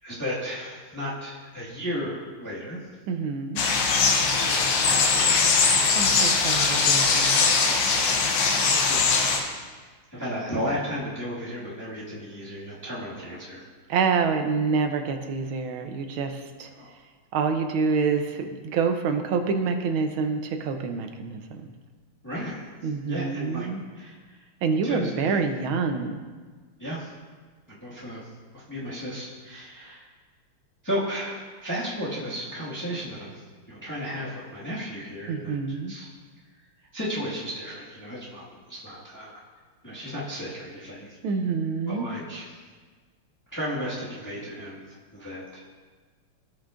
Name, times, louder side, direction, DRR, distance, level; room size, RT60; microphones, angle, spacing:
voice 1, 0.0-2.8 3.9-4.5 4.8-5.5 8.6-9.3 10.1-13.6 16.8-16.9 22.2-22.6 23.1-23.7 23.9-24.2 24.8-25.4 26.8-27.1 27.7-28.2 28.5-30.0 30.8-33.4 33.7-36.1 36.9-39.4 39.8-41.1 41.9-42.5 43.5-45.6, equal, 10° left, -9 dB, 1.6 m, -34 dB
voice 2, 3.1-3.6 5.9-7.5 13.9-16.7 17.3-21.7 22.8-23.8 24.6-26.2 35.3-35.9 41.2-42.1, right 5 dB, 75° right, 6 dB, 1.5 m, -27 dB
sound 1, 3.6-9.4, left 4 dB, 90° left, 1.8 m, -21 dB
16.5 x 5.7 x 2.5 m, 1.4 s
omnidirectional pair, 2.3 m